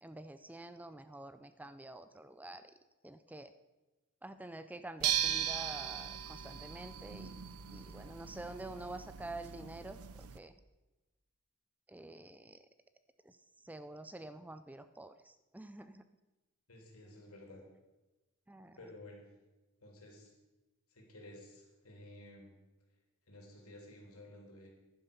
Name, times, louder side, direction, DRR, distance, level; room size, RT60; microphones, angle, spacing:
voice 1, 0.0-2.7 3.0-3.5 4.2-10.5 11.9-12.6 13.2-13.4 13.6-16.1 18.5-18.8, right 2 dB, 5° right, 11 dB, 0.4 m, -48 dB
sound 1, 5.0-10.4, right 10 dB, 85° right, 0.6 m, -38 dB
voice 2, 16.7-17.6 18.8-19.3 19.8-20.3 20.9-22.5 23.3-24.7, left 1 dB, 80° left, 1 dB, 3.2 m, -53 dB
11.5 x 10.5 x 5.4 m, 1.1 s
head